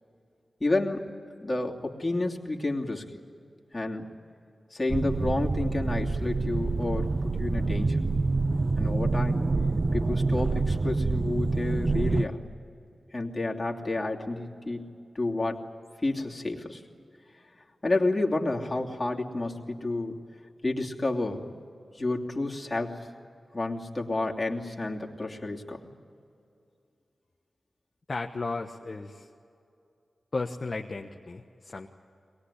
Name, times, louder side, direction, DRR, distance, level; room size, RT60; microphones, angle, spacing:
voice 1, 0.6-1.1 1.4-3.1 3.7-4.1 4.7-8.0 8.8-9.5 9.9-12.4 13.1-14.9 15.1-15.6 16.0-16.8 17.8-20.1 20.6-21.5 21.9-23.1 23.5-25.9, left 2 dB, 35° left, -1 dB, 2.9 m, -30 dB
sound 1, 4.9-12.3, right 3 dB, 45° right, 0.8 m, -27 dB
voice 2, 28.1-29.3 30.3-31.9, left 3 dB, 50° left, 2 dB, 1.2 m, -34 dB
22.5 x 20.5 x 10.0 m, 2.6 s
cardioid pair, 40°, 0 cm